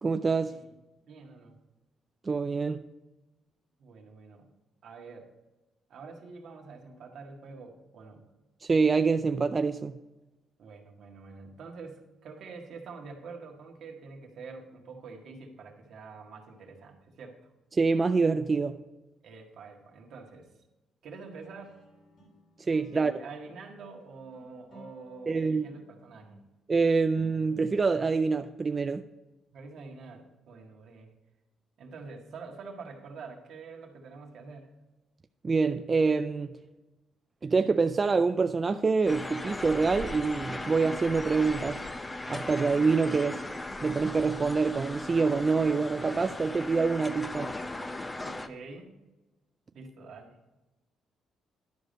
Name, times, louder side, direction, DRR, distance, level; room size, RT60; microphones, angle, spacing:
voice 1, 0.0-0.5 2.2-2.9 8.6-10.0 17.7-18.8 22.7-23.1 25.3-25.7 26.7-29.1 35.4-36.6 37.4-41.8 42.3-43.5 43.8-47.5, right 4 dB, 30° right, 0.4 m, -26 dB
voice 2, 1.0-1.6 3.8-4.5 4.8-5.3 5.9-8.3 10.6-17.5 19.2-20.5 21.0-21.8 22.9-26.4 29.5-31.1 31.8-34.7 48.2-48.9 49.7-50.4, right 4 dB, 70° right, 1.8 m, -46 dB
sound 1, 21.4-26.4 26.9-27.8, left 1 dB, 65° left, 3.4 m, -56 dB
sound 2, 39.1-48.5, left 2 dB, 20° left, 0.7 m, -38 dB
11.0 x 5.1 x 5.2 m
cardioid pair, 90°, 0 cm